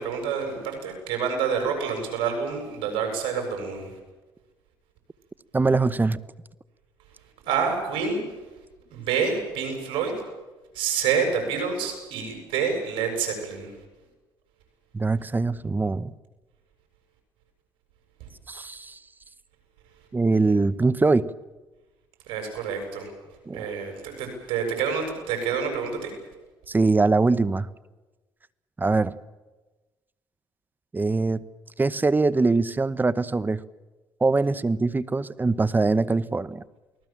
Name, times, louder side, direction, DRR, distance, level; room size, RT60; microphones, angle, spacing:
voice 1, 0.0-3.9 7.5-8.2 8.9-10.2 10.7-13.7 22.3-23.1 23.5-26.1, right 6 dB, 85° right, 4 dB, 7.4 m, -28 dB
voice 2, 5.5-6.2 14.9-16.1 18.5-19.0 20.1-21.3 23.5-23.7 26.7-27.7 28.8-29.1 30.9-31.4 31.8-33.6 34.2-36.6, right 3 dB, 25° right, 18 dB, 1.0 m, -22 dB
29.0 x 19.5 x 7.5 m, 1.2 s
supercardioid pair, 75°, 8 cm